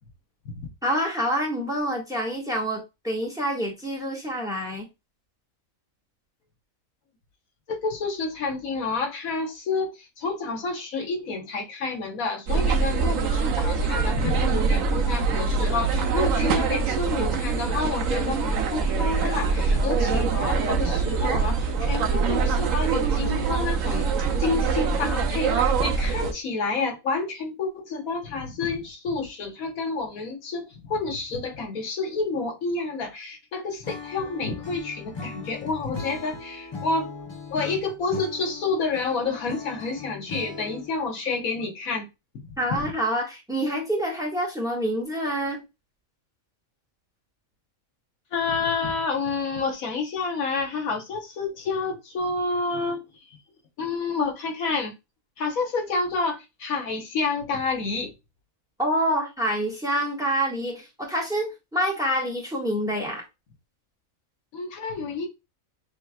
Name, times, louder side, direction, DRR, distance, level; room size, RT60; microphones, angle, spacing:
voice 1, 0.8-4.9 42.6-45.6 58.8-63.2, equal, 5° right, 1.6 m, -27 dB
voice 2, 7.7-24.1 24.4-37.1 37.5-42.1 42.3-42.9 48.3-53.4 53.8-54.9 55.4-58.1 64.5-65.3, left 4 dB, 90° left, 1.5 m, -29 dB
sound 1, 12.5-26.3, right 5 dB, 75° right, 1.1 m, -24 dB
Acoustic guitar / Strum, 33.8-41.0, left 4 dB, 25° left, 0.6 m, -39 dB
6.7 x 3.0 x 2.3 m
omnidirectional pair, 1.4 m